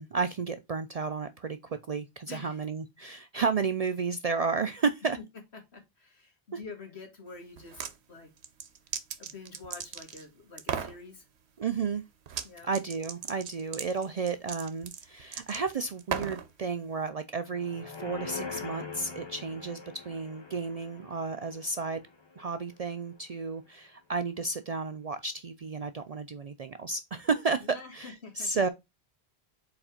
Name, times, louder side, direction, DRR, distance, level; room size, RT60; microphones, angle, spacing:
voice 1, 0.0-5.2 11.6-12.0 12.6-19.8 20.1-22.0 22.4-27.7 27.9-28.7, right 4 dB, 55° right, 0.4 m, -32 dB
voice 2, 2.3-2.6 5.5-7.8 8.1-8.3 9.2-11.2 12.4-12.7 27.6-28.5, left 4 dB, 80° left, 2.2 m, -47 dB
sound 1, 7.6-7.9 8.4-10.2 10.6-11.0 12.3-12.5 12.7-16.5, right 8 dB, 85° right, 1.0 m, -36 dB
sound 2, 17.4-22.7 23.1-23.2, left 5 dB, 25° left, 0.9 m, -43 dB
4.8 x 4.2 x 5.0 m
omnidirectional pair, 1.1 m